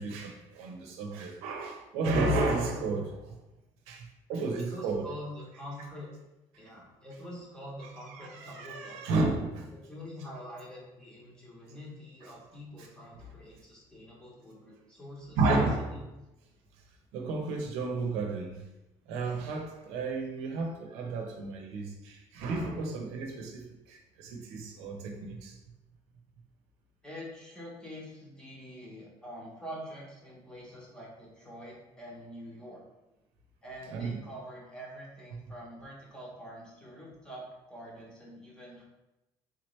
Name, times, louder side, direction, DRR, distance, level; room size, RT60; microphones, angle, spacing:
voice 1, 0.0-3.4 3.9-5.1 8.1-9.7 15.4-16.1 17.1-18.6 19.1-25.6 33.9-34.2, right 3 dB, 90° right, 2 dB, 0.8 m, -32 dB
voice 2, 4.6-6.1 6.6-9.2 9.7-15.4 27.0-32.8 33.6-38.8, equal, 5° left, -4 dB, 0.9 m, -45 dB
3.9 x 3.0 x 3.1 m, 0.96 s
cardioid pair, 175°, 10 cm